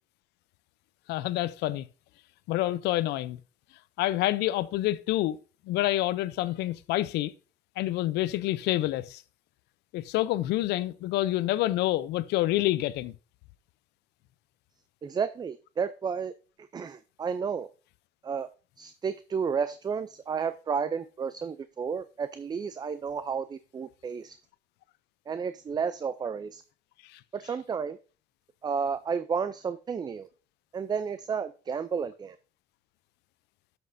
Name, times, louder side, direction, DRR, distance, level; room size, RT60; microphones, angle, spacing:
voice 1, 1.1-1.9 2.5-3.4 4.0-5.4 5.7-7.3 7.8-9.2 9.9-13.1 27.1-27.2, left 15 dB, 85° left, 0.5 m, -27 dB
voice 2, 15.0-16.3 16.7-17.7 18.2-18.5 18.8-24.4 25.3-26.6 27.3-28.0 28.6-30.3 30.7-32.4, right 6 dB, 25° right, 0.4 m, -32 dB
12.5 x 6.1 x 2.6 m
cardioid pair, 110°, 17 cm